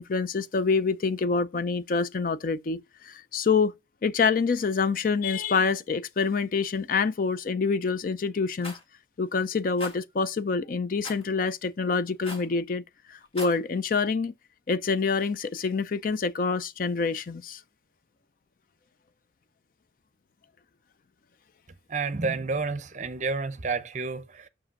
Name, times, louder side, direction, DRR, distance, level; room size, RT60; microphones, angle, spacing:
voice 1, 0.0-3.7 4.0-8.7 9.2-12.8 13.1-14.3 14.7-17.6, left 4 dB, 50° left, 0.4 m, -26 dB
Rattle, 8.6-8.8 9.8-10.0 11.0-11.2 12.2-12.5 13.2-13.6, left 2 dB, 30° left, 2.3 m, -39 dB
voice 2, 21.9-24.5, right 4 dB, 40° right, 0.7 m, -30 dB
5.9 x 5.0 x 6.3 m
head